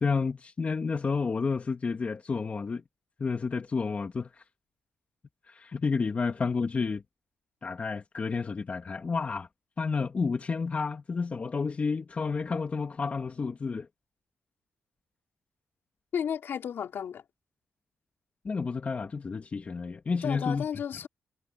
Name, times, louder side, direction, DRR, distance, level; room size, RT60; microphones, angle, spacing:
voice 1, 0.0-2.8 3.2-4.3 5.5-7.0 7.6-9.5 9.8-13.9 18.4-20.6, left 4 dB, 35° left, 2.1 m, -30 dB
voice 2, 16.1-17.2 20.2-21.1, left 8 dB, 65° left, 3.4 m, -33 dB
cardioid pair, 120°, 4 cm